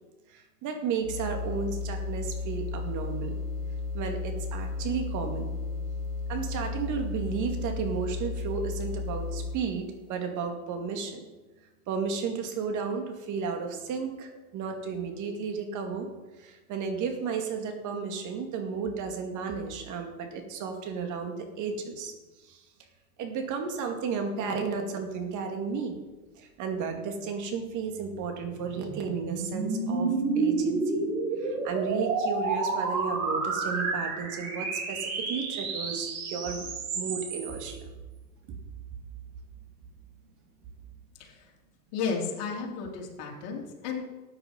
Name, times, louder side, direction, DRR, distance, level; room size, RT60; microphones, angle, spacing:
voice 1, 0.3-3.3 3.9-5.5 6.3-11.2 11.9-16.1 16.4-22.1 22.4-22.6 23.2-26.0 26.4-31.0 31.4-37.9, right 5 dB, 40° right, 4 dB, 2.4 m, -33 dB
sound 1, 1.0-9.7, left 4 dB, 75° left, 2.5 m, -34 dB
sound 2, 28.0-37.7, right 4 dB, 65° right, 3.8 m, -30 dB
voice 2, 41.9-44.0, left 5 dB, 50° left, 0 dB, 3.5 m, -33 dB
13.5 x 9.0 x 5.3 m, 1.2 s
hypercardioid pair, 105°, 46 cm